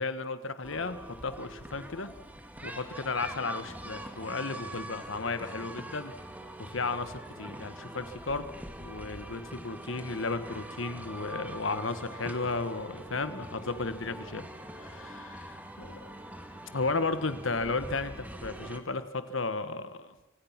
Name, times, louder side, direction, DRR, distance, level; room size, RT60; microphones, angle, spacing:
voice 1, 0.0-2.1 2.6-6.1 6.6-8.5 8.8-14.5 14.7-16.0 16.7-20.1, left 3 dB, 70° left, 11 dB, 1.5 m, -34 dB
sound 1, 0.6-18.8, right 1 dB, 10° right, 2.0 m, -43 dB
26.0 x 24.5 x 6.0 m, 1.1 s
head